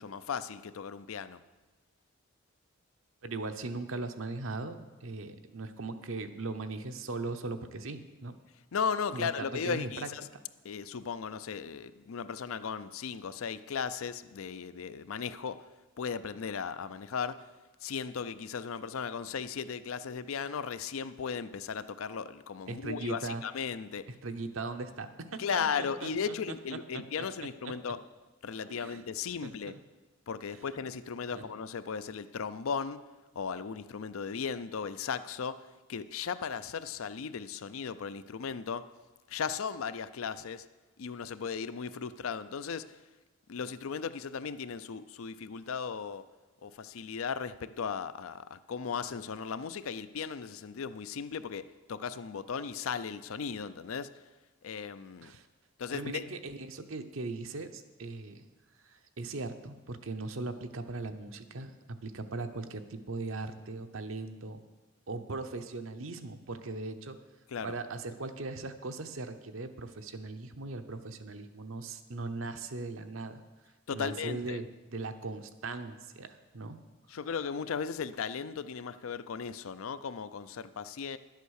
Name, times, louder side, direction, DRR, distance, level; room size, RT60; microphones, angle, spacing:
voice 1, 0.0-1.4 8.7-10.3 10.6-15.7 16.0-17.5 17.8-24.0 25.4-28.0 28.4-29.7 30.3-33.0 33.4-35.6 35.9-38.9 39.3-40.7 41.0-43.0 43.5-46.3 46.6-54.2 54.6-55.3 55.8-56.3 67.5-67.7 73.9-74.6 77.1-81.2, left 6 dB, 85° left, 14 dB, 0.5 m, -36 dB
voice 2, 3.2-8.3 9.1-10.4 22.7-23.4 24.1-27.0 27.6-27.7 28.6-29.1 29.4-29.8 31.3-31.5 55.2-55.5 55.9-58.5 58.8-61.7 62.0-64.6 65.1-67.2 67.6-73.4 73.9-76.8, right 3 dB, 80° right, 8 dB, 0.8 m, -39 dB
11.5 x 8.2 x 6.4 m, 1.2 s
head